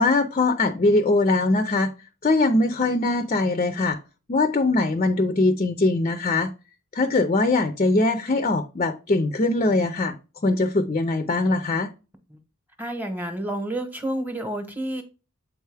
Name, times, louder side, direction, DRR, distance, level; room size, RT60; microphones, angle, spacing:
voice 1, 0.0-1.9 2.2-4.0 4.3-6.5 6.9-10.1 10.4-11.9, left 2 dB, 30° left, 0.4 m, -21 dB
voice 2, 12.8-15.0, right 1 dB, 10° right, 0.9 m, -29 dB
7.3 x 4.5 x 3.3 m
head